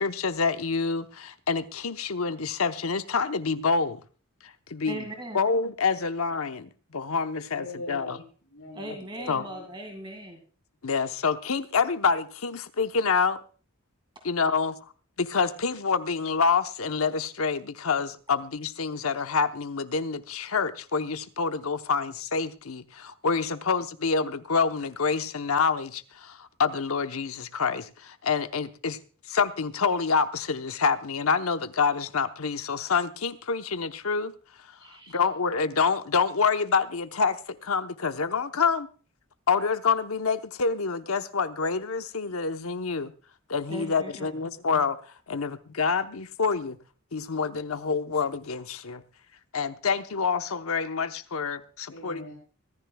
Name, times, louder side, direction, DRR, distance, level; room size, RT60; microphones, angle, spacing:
voice 1, 0.0-4.0 4.4-5.0 5.3-8.2 9.3-9.5 10.8-13.4 14.2-14.8 15.2-29.0 29.3-34.3 35.1-38.9 39.5-43.1 43.5-46.8 47.1-49.0 49.5-52.3, left 5 dB, 85° left, 0.9 m, -27 dB
voice 2, 4.9-5.4 8.7-10.4 34.8-35.2 43.7-44.3, right 1 dB, 25° right, 2.1 m, -39 dB
voice 3, 7.5-9.7 51.9-52.3, left 2 dB, 60° left, 7.0 m, -43 dB
25.0 x 14.0 x 2.3 m
head